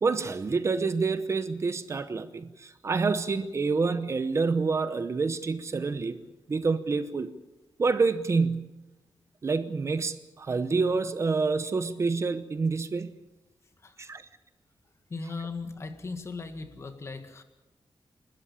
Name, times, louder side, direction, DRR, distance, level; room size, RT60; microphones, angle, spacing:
voice 1, 0.0-6.2 6.5-7.3 7.8-8.7 9.4-13.2 14.0-14.2, right 4 dB, 35° right, 12 dB, 0.9 m, -27 dB
voice 2, 15.1-17.4, left 4 dB, 35° left, 8 dB, 1.8 m, -38 dB
29.5 x 13.0 x 8.4 m, 1.1 s
wide cardioid pair, 180°, 8 cm